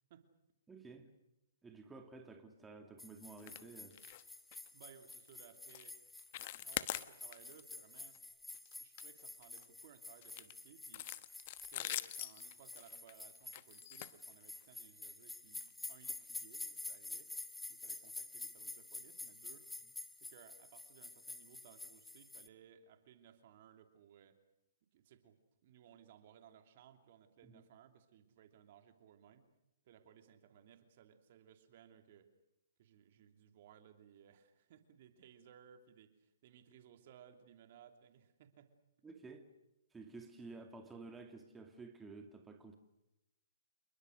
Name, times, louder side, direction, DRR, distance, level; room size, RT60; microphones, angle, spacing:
voice 1, 0.7-1.1 1.6-4.0 27.4-27.6 39.0-39.5 39.9-42.7, right 3 dB, 10° right, 5 dB, 2.3 m, -52 dB
sound 1, 3.0-22.5, left 2 dB, 5° left, 1.3 m, -50 dB
sound 2, 3.4-3.6 3.9-4.2 4.5-4.7 5.1-5.3 5.7-5.9 6.2-7.6 8.0-8.2 8.5-9.7 10.2-14.8 15.5-15.7 16.1-16.2 16.6-16.7, left 15 dB, 45° left, 1.1 m, -45 dB
voice 2, 4.7-6.0 6.5-8.2 8.5-11.1 11.7-17.3 17.7-19.7 20.2-24.4 24.9-29.5 29.8-32.3 32.8-38.7, right 9 dB, 50° right, 7 dB, 2.9 m, -62 dB
28.5 x 22.5 x 6.5 m, 0.89 s
hypercardioid pair, 130°, 0 cm